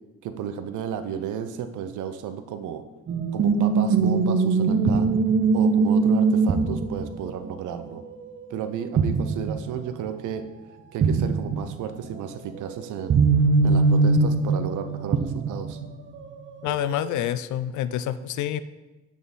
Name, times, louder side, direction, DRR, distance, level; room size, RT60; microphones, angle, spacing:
voice 1, 0.2-2.8 3.3-5.1 5.5-8.0 8.5-10.5 10.9-13.3 13.6-15.8, right 8 dB, 80° right, 9 dB, 0.6 m, -33 dB
sound 1, 3.1-8.7 9.0-9.7 10.0-10.1 11.0-11.8 12.5-15.9 16.7-17.1, right 4 dB, 40° right, 0.6 m, -22 dB
voice 2, 16.6-18.6, left 11 dB, 75° left, 14 dB, 0.5 m, -27 dB
9.3 x 3.7 x 4.1 m, 1.1 s
cardioid pair, 90°, 30 cm